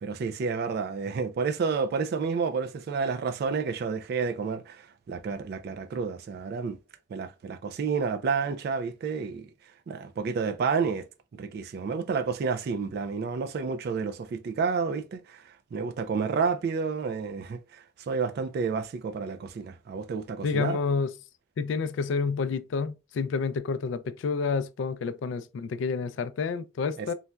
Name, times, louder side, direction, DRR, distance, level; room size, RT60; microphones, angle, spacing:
voice 1, 0.0-6.8 7.1-9.5 9.9-11.1 11.4-20.8 27.0-27.1, right 5 dB, 60° right, 0.3 m, -30 dB
voice 2, 20.4-21.1 21.6-27.1, left 5 dB, 85° left, 0.3 m, -29 dB
4.0 x 2.1 x 2.2 m
head